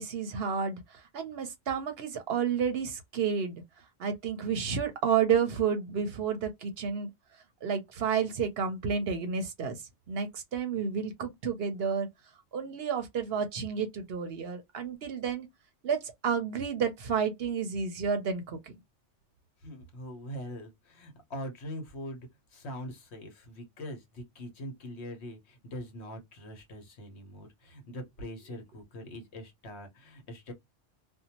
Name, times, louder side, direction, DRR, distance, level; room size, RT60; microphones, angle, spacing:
voice 1, 0.0-3.6 4.0-7.1 7.6-9.8 10.1-12.1 12.5-15.5 15.8-18.7, right 6 dB, 60° right, 0.7 m, -31 dB
voice 2, 19.6-30.5, equal, 65° left, 1.1 m, -43 dB
2.6 x 2.2 x 2.8 m
omnidirectional pair, 1.2 m